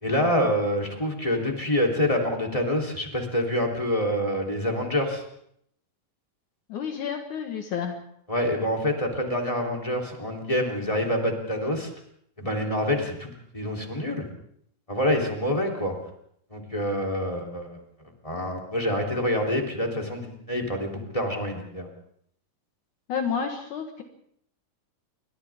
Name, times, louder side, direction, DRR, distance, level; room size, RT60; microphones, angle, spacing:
voice 1, 0.0-5.2 8.3-11.9 12.4-14.3 14.9-15.9 16.5-17.8 18.2-21.9, left 1 dB, 10° left, 3 dB, 3.4 m, -26 dB
voice 2, 6.7-8.0 23.1-24.0, left 7 dB, 65° left, 3 dB, 2.9 m, -30 dB
29.0 x 24.0 x 3.7 m, 0.69 s
omnidirectional pair, 3.8 m